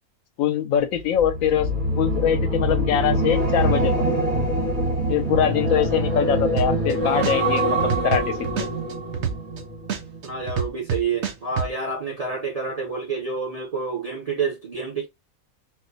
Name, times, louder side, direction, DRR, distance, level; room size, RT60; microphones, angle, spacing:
voice 1, 0.4-1.7 2.0-3.9 5.1-8.7, left 9 dB, 75° left, 0.9 m, -23 dB
sound 1, 1.1-10.5 10.8-11.2, right 1 dB, 80° right, 2.6 m, -24 dB
sound 2, 6.6-6.9 7.2-9.6 9.9-11.7, right 7 dB, 60° right, 0.9 m, -26 dB
voice 2, 10.2-15.1, right 4 dB, 40° right, 0.6 m, -28 dB
4.1 x 2.1 x 2.6 m
omnidirectional pair, 1.5 m